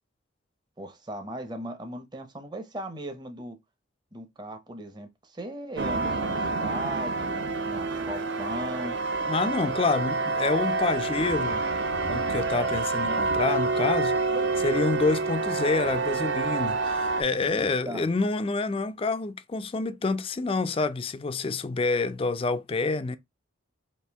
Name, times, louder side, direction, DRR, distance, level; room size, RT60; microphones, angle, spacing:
voice 1, 0.8-3.6 4.1-9.0 13.0-13.3 14.3-14.5 17.5-18.1, right 1 dB, 20° right, 0.7 m, -38 dB
sound 1, 5.8-17.2, right 3 dB, 60° right, 0.6 m, -28 dB
voice 2, 9.3-11.6 12.1-14.1 14.6-23.2, left 3 dB, 25° left, 0.3 m, -27 dB
Thunder / Rain, 9.8-17.7, right 3 dB, 90° right, 1.0 m, -44 dB
4.3 x 2.6 x 3.4 m
head